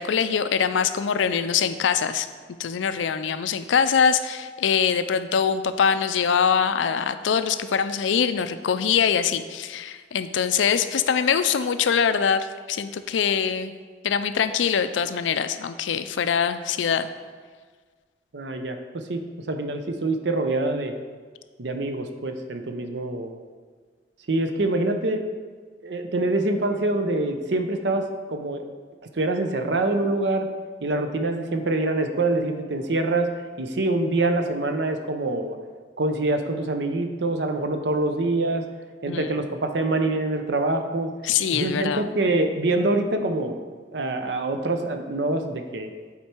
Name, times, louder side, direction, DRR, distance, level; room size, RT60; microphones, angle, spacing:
voice 1, 0.0-2.3 2.6-13.7 14.0-17.1 39.1-39.3 41.2-42.1, left 7 dB, 85° left, 11 dB, 0.4 m, -23 dB
voice 2, 18.3-20.9 21.6-23.4 24.3-25.2 25.8-28.7 29.2-30.5 30.8-33.3 33.6-35.6 36.0-38.6 39.0-41.1 41.5-43.6 43.9-45.9, right 2 dB, 70° right, 6 dB, 0.7 m, -25 dB
8.5 x 4.5 x 4.4 m, 1.5 s
head